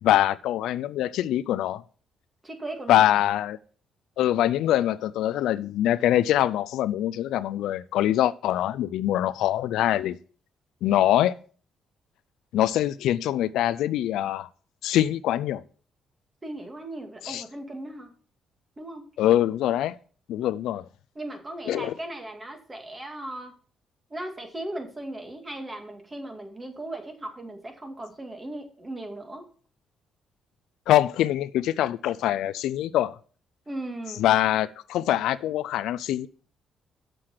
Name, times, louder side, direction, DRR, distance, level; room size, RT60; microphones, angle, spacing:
voice 1, 0.0-1.8 2.9-3.6 4.2-10.2 10.8-11.3 12.5-14.5 14.8-15.6 17.2-17.4 19.2-20.0 20.3-20.8 21.7-21.9 30.9-33.1 34.2-36.3, left 12 dB, 85° left, 0.4 m, -24 dB
voice 2, 2.4-3.1 16.4-18.1 18.8-19.0 21.2-23.5 24.1-29.5 33.7-34.2, right 1 dB, 20° right, 2.1 m, -37 dB
7.6 x 6.6 x 5.7 m
cardioid pair, 90°, 0 cm